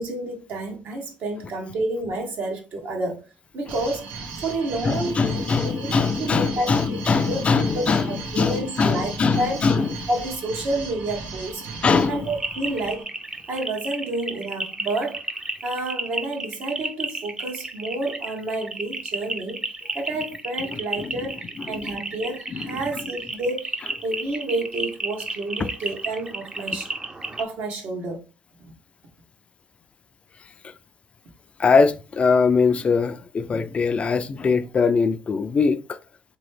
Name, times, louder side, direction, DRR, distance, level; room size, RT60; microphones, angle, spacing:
voice 1, 0.0-3.2 3.5-7.0 7.3-7.4 7.7-9.6 10.1-11.7 12.1-13.1 13.5-15.2 15.6-19.6 19.9-26.9 27.4-28.2 28.6-28.7, right 2 dB, 65° right, 1.2 m, -29 dB
sound 1, 3.7-13.0, right 4 dB, 85° right, 0.9 m, -37 dB
voice 2, 4.8-10.0 11.8-12.3 20.7-21.3 21.6-22.0 22.5-23.1 30.6-30.7 31.6-36.0, left 5 dB, 40° left, 0.4 m, -22 dB
sound 2, 12.3-27.4, right 2 dB, 20° right, 0.6 m, -32 dB
3.4 x 3.0 x 3.2 m
supercardioid pair, 80°, 3 cm